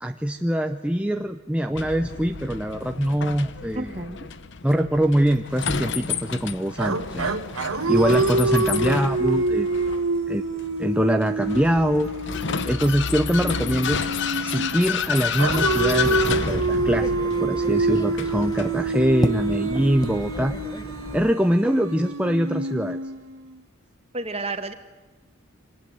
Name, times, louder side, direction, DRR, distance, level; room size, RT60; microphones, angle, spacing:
voice 1, 0.0-3.9 4.6-7.3 7.9-9.7 10.3-10.4 10.8-12.1 12.7-14.0 14.4-17.1 17.4-20.8 21.1-23.0, equal, 5° right, 6 dB, 0.7 m, -23 dB
Vehicle, 1.7-19.8, left 6 dB, 55° left, 1.0 m, -31 dB
voice 2, 3.8-4.3 24.1-24.7, right 2 dB, 30° right, 8 dB, 1.9 m, -31 dB
sound 1, 6.8-14.8 15.4-23.5, right 3 dB, 85° right, 1.9 m, -26 dB
sound 2, 15.4-21.3, left 1 dB, 20° left, 0.9 m, -32 dB
25.5 x 19.5 x 9.5 m, 1.2 s
head